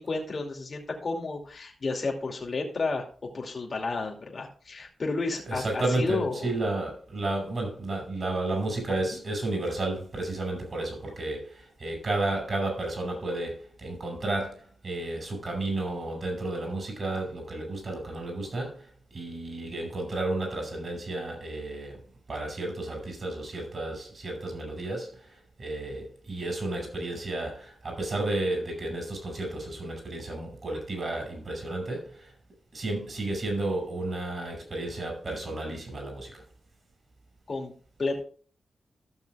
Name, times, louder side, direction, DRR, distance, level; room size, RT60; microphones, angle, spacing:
voice 1, 0.0-6.5 9.0-9.2 37.5-37.7 38.0-38.2, left 3 dB, 50° left, 2.5 m, -32 dB
voice 2, 5.5-18.9 19.1-22.0 22.3-32.3 32.7-36.4, right 2 dB, 50° right, 5.7 m, -32 dB
14.0 x 6.5 x 3.5 m
cardioid pair, 70°, 0 cm